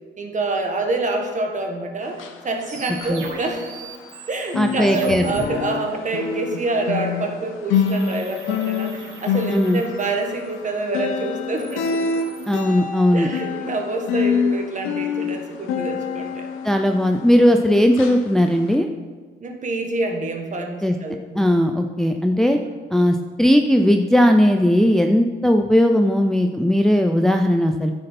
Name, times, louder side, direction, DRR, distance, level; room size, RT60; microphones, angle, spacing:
voice 1, 0.2-3.6 4.3-12.0 13.1-16.5 19.4-21.4, right 2 dB, 40° right, 3 dB, 1.6 m, -26 dB
sound 1, 2.1-4.2 4.5-17.6 18.0-18.2 18.7-18.8, left 6 dB, 85° left, 0.9 m, -27 dB
sound 2, 2.6-5.4 7.7-10.5 11.4-12.6, right 4 dB, 70° right, 1.7 m, -38 dB
voice 2, 4.6-5.3 9.5-9.8 12.5-13.3 16.6-18.9 20.8-21.0 21.3-22.6 22.9-27.9, equal, ahead, 4 dB, 0.5 m, -17 dB
10.0 x 6.6 x 4.2 m, 1.4 s
cardioid pair, 90°, 20 cm